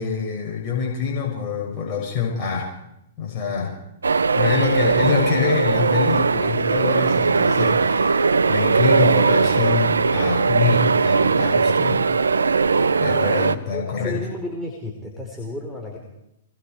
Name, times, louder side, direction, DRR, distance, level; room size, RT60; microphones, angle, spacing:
voice 1, 0.0-2.7 3.2-3.8 4.3-12.1 13.0-14.2, left 6 dB, 35° left, -2 dB, 7.0 m, -25 dB
sound 1, 4.0-13.5, right 4 dB, 80° right, 0.9 m, -19 dB
voice 2, 13.7-16.0, left 1 dB, 5° left, -2 dB, 4.4 m, -32 dB
27.0 x 21.5 x 4.8 m, 0.84 s
figure-of-eight pair, 115°, 0 cm